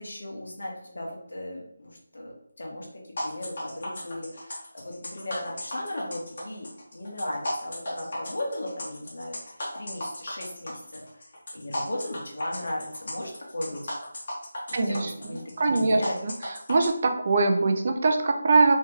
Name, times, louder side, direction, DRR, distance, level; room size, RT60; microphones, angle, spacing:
voice 1, 0.0-13.9 14.7-16.2, left 1 dB, 80° left, -2 dB, 1.4 m, -37 dB
sound 1, 3.2-16.9, left 1 dB, 50° left, 1.3 m, -35 dB
voice 2, 14.7-15.1 15.6-16.3 16.7-18.8, right 3 dB, 40° right, 5 dB, 0.5 m, -22 dB
3.2 x 3.2 x 3.6 m, 0.74 s
figure-of-eight pair, 170°, 0 cm